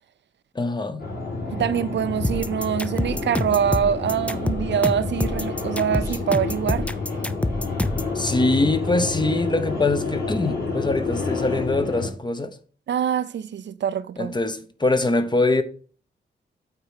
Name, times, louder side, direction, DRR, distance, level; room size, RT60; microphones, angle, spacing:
voice 1, 0.5-1.1 8.1-12.5 14.2-15.6, left 2 dB, 20° left, 0.9 m, -23 dB
sound 1, 1.0-12.1, left 3 dB, 50° left, 5.3 m, -29 dB
voice 2, 1.5-6.9 12.9-14.3, right 8 dB, 65° right, 0.5 m, -24 dB
sound 2, 2.2-8.1, left 1 dB, 5° left, 0.4 m, -26 dB
8.7 x 4.3 x 6.5 m
wide cardioid pair, 135°, 20 cm